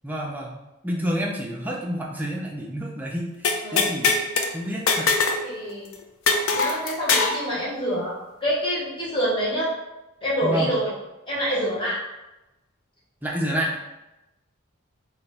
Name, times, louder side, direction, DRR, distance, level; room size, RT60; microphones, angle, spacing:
voice 1, 0.0-0.5 0.8-4.2 4.5-5.1 10.4-10.7 13.2-13.8, equal, 10° right, -2 dB, 0.4 m, -29 dB
sound 1, 3.4-4.5 4.9-5.4 5.7-5.8 6.3-7.4, left 4 dB, 70° left, 0.4 m, -21 dB
voice 2, 5.4-5.9 6.5-9.8 10.2-10.9 11.3-12.0, equal, 25° left, -5 dB, 0.9 m, -26 dB
2.9 x 2.2 x 4.1 m, 0.97 s
head